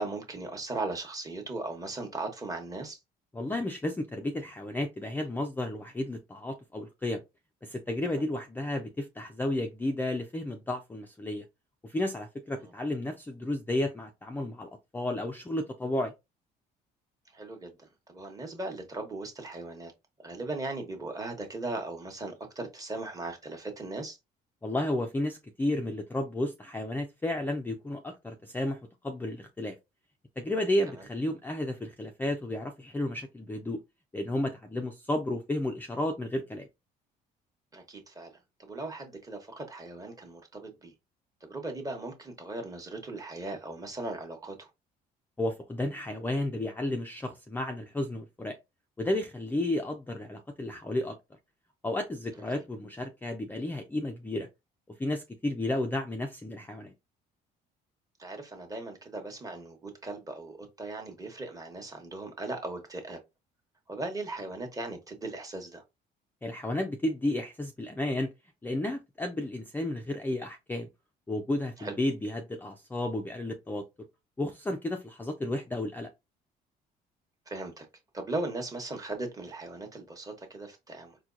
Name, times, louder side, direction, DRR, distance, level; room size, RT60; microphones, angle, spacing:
voice 1, 0.0-3.0 17.3-17.7 18.1-19.9 20.2-24.2 37.7-38.3 38.6-40.9 41.5-44.7 52.6-52.7 58.2-63.2 63.9-65.8 71.8-71.9 77.5-77.8 78.1-81.1, right 2 dB, 20° right, 1.0 m, -38 dB
voice 2, 3.3-7.2 7.6-11.4 11.8-16.1 24.6-29.8 30.4-33.8 34.1-36.7 45.4-48.6 49.0-51.2 51.8-54.5 55.0-56.9 66.4-68.3 68.6-70.9 71.3-73.8 74.4-76.1, left 1 dB, 10° left, 0.4 m, -32 dB
4.3 x 2.2 x 2.5 m
cardioid pair, 110°, 17 cm